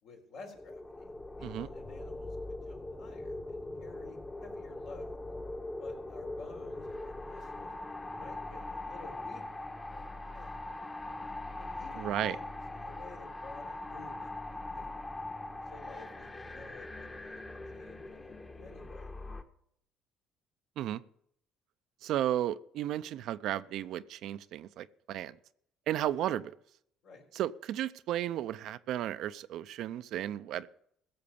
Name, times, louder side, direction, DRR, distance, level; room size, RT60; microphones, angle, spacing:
voice 1, 0.0-5.1 5.8-7.7 8.1-10.6 11.6-12.4 12.7-14.9 15.7-17.4 17.7-19.1 27.0-27.3, left 3 dB, 70° left, 0 dB, 4.1 m, -52 dB
sound 1, 0.5-19.4, left 2 dB, 20° left, 1.2 m, -42 dB
voice 2, 12.0-12.4 20.8-21.0 22.0-25.4 25.9-26.5 27.3-30.7, right 12 dB, 70° right, 14 dB, 0.5 m, -34 dB
16.0 x 6.7 x 6.9 m, 0.71 s
supercardioid pair, 70°, 0 cm